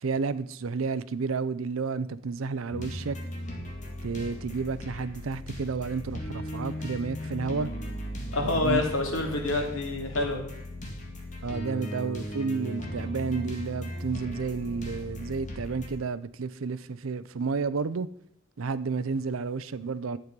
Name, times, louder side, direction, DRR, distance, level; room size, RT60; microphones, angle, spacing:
voice 1, 0.0-3.2 4.0-7.7 8.5-8.8 11.4-18.1 18.6-20.2, right 4 dB, 90° right, 0.6 m, -31 dB
sound 1, 2.7-15.9, equal, 40° left, 2.3 m, -37 dB
voice 2, 8.3-10.5, left 2 dB, 80° left, 2.6 m, -27 dB
11.0 x 8.2 x 5.2 m
head